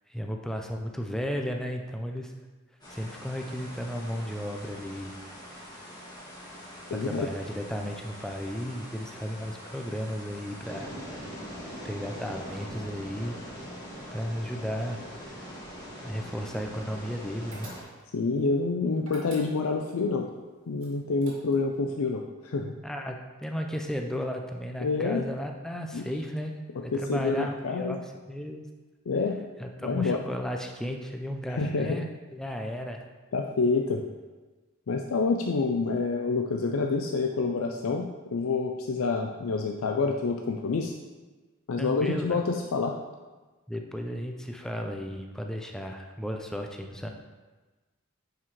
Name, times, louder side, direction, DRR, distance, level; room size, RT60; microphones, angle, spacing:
voice 1, 0.1-2.3 2.9-5.1 6.9-10.9 11.8-13.4 14.1-15.0 15.3-15.5 16.0-17.7 22.8-26.5 26.8-28.7 29.6-33.0 41.8-42.4 43.7-47.1, equal, 5° left, 3 dB, 0.5 m, -34 dB
sound 1, 2.8-17.8, equal, 20° left, 2.1 m, -43 dB
voice 2, 6.9-7.3 18.1-20.3 20.7-22.7 24.8-25.2 25.9-26.0 26.9-28.0 29.1-29.4 29.8-30.2 31.6-32.0 33.3-34.0 34.9-40.9 41.7-43.0, left 4 dB, 90° left, 2 dB, 0.5 m, -27 dB
sound 2, 17.5-18.2 19.0-19.9 20.8-21.8, right 2 dB, 80° right, 2.0 m, -47 dB
9.1 x 4.8 x 3.2 m, 1.2 s
head